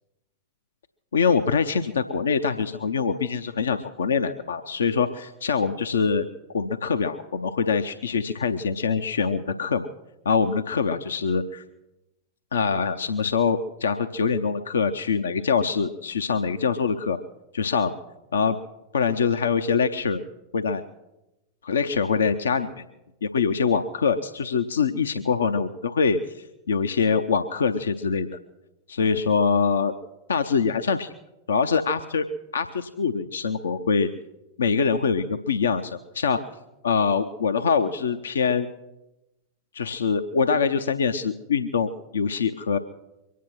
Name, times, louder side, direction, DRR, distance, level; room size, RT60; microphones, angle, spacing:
voice 1, 1.1-9.9 10.3-11.6 12.5-17.2 17.5-17.9 18.3-18.6 18.9-20.2 20.5-20.8 21.6-22.8 23.2-28.4 28.9-29.9 30.3-31.1 31.5-32.3 32.5-34.1 34.6-36.4 36.8-38.7 39.7-42.8, left 5 dB, 70° left, 8 dB, 0.6 m, -24 dB
23.5 x 9.3 x 6.2 m, 0.96 s
figure-of-eight pair, 90°, 0 cm